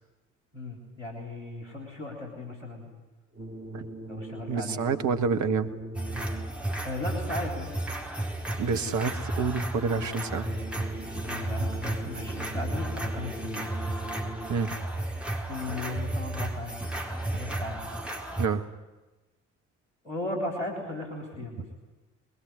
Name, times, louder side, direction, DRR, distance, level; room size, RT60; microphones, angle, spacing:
voice 1, 0.5-2.9 4.1-4.8 6.8-7.7 11.2-13.7 15.5-16.8 17.3-17.8 20.0-21.6, left 2 dB, 85° left, 3 dB, 4.2 m, -36 dB
sound 1, 3.3-6.8 9.7-14.8, right 1 dB, 35° right, 3.2 m, -40 dB
voice 2, 4.5-5.7 8.5-10.5 14.5-14.7 18.4-18.6, right 5 dB, 50° right, 8 dB, 1.6 m, -28 dB
sound 2, 5.9-18.5, right 1 dB, 5° right, 4.2 m, -33 dB
22.5 x 21.5 x 9.8 m, 1.1 s
figure-of-eight pair, 40°, 37 cm